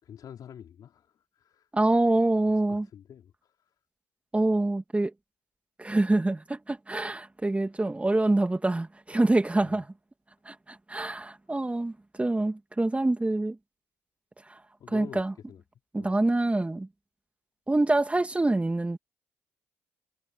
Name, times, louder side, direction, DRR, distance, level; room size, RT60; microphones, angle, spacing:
voice 1, 0.0-1.7 2.7-3.5 9.6-9.8 14.8-15.2 15.5-15.6 16.0-16.1, left 9 dB, 60° left, 4.6 m, -47 dB
voice 2, 1.7-2.9 4.3-5.1 5.8-9.9 10.5-13.6 14.5-14.6 14.9-15.3 15.9-16.9 17.7-19.0, right 2 dB, 15° right, 2.6 m, -26 dB
hypercardioid pair, 50°, 7 cm